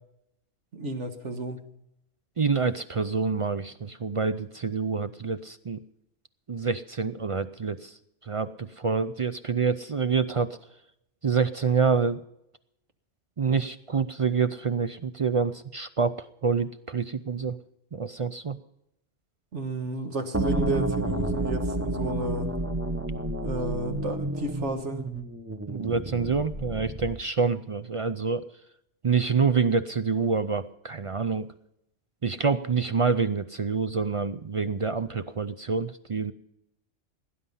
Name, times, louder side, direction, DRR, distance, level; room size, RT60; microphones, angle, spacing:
voice 1, 0.7-1.7 19.5-22.5 23.4-25.0, right 2 dB, 70° right, 7 dB, 1.8 m, -32 dB
voice 2, 2.4-5.8 6.5-8.0 8.2-10.6 11.2-12.2 13.4-17.6 17.9-18.6 25.7-28.5 29.0-31.5 32.2-36.3, right 5 dB, 50° right, 12 dB, 0.4 m, -27 dB
sound 1, 20.3-27.3, right 2 dB, 15° right, 0.9 m, -30 dB
18.0 x 10.0 x 5.5 m, 0.80 s
omnidirectional pair, 1.2 m